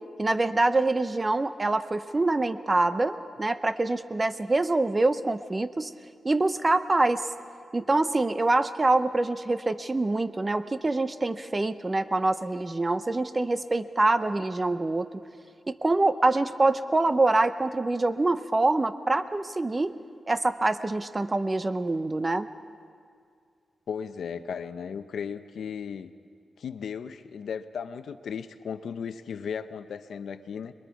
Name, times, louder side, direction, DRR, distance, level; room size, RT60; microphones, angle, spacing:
voice 1, 0.2-5.9 6.2-7.2 7.7-15.1 15.7-19.9 20.3-22.5, right 2 dB, 20° right, 12 dB, 0.6 m, -25 dB
voice 2, 23.9-26.1 26.6-30.7, left 7 dB, 80° left, 10 dB, 0.7 m, -36 dB
26.5 x 22.0 x 4.7 m, 2.2 s
wide cardioid pair, 180°, 0 cm